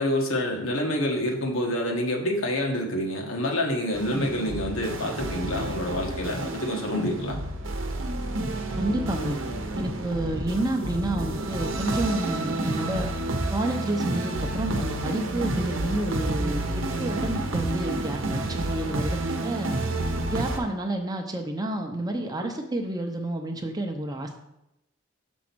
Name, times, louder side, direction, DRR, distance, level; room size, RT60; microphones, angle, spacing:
voice 1, 0.0-7.4, left 1 dB, 80° left, 1 dB, 1.4 m, -27 dB
sound 1, 3.9-20.6, right 1 dB, 70° right, 0.8 m, -30 dB
voice 2, 8.8-9.4 9.7-13.1 13.5-19.7 20.3-24.4, right 1 dB, 20° right, 4 dB, 0.6 m, -30 dB
6.2 x 4.1 x 6.0 m, 0.85 s
head